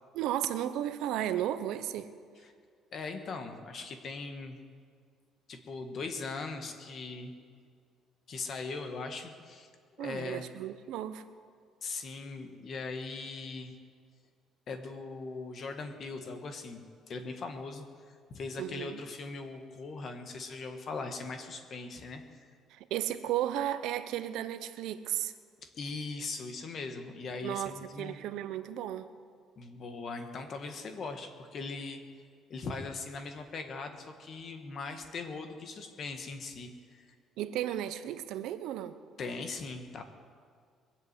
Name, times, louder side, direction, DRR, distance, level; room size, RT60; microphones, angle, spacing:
voice 1, 0.1-2.1 10.0-11.2 18.6-19.0 22.7-25.3 27.4-29.1 37.4-39.0, right 12 dB, 75° right, 11 dB, 0.8 m, -34 dB
voice 2, 2.9-4.6 5.5-7.4 8.3-9.7 10.0-10.5 11.8-13.7 14.7-22.2 25.7-28.2 29.6-32.0 32.5-37.1 39.2-40.0, left 4 dB, 35° left, 6 dB, 1.4 m, -40 dB
21.5 x 8.1 x 8.1 m, 2.1 s
cardioid pair, 170°, 0 cm